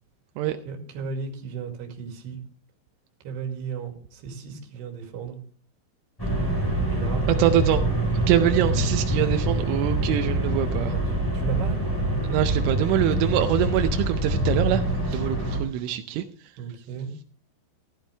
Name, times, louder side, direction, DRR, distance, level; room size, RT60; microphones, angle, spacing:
voice 1, 0.7-2.4 3.2-5.4 6.9-7.6 10.9-11.0 11.3-11.8 16.6-17.1, right 5 dB, 65° right, 3 dB, 4.2 m, -35 dB
sound 1, 6.2-15.6, right 1 dB, 5° left, 3.0 m, -25 dB
voice 2, 7.3-7.8 8.3-10.9 12.3-14.8 15.1-16.2, right 12 dB, 90° right, 7 dB, 3.2 m, -24 dB
14.5 x 12.5 x 3.3 m, 0.44 s
omnidirectional pair, 5.4 m